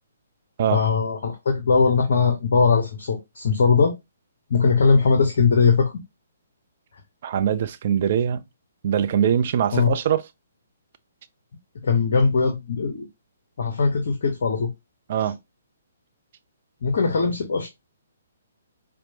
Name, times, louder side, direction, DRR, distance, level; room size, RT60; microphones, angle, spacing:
voice 1, 0.7-3.9 4.5-5.9 9.7-9.9 11.8-13.1 13.6-14.7 16.8-17.7, left 5 dB, 55° left, 0.6 m, -20 dB
voice 2, 7.2-8.4 8.8-10.2 15.1-15.4, right 9 dB, 45° right, 0.3 m, -22 dB
4.3 x 2.1 x 2.7 m
figure-of-eight pair, 130°, 0 cm